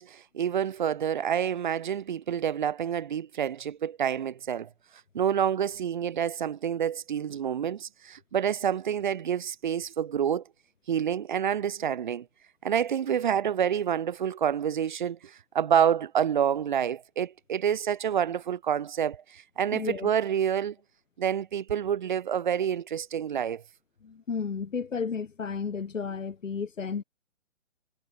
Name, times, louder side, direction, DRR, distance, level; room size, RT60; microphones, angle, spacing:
voice 1, 0.0-4.7 5.1-10.4 10.9-12.3 12.6-20.8 21.2-23.6, right 8 dB, 40° right, 5.7 m, -28 dB
voice 2, 19.7-20.1 24.0-27.0, left 5 dB, 90° left, 5.1 m, -33 dB
hypercardioid pair, 175°, 37 cm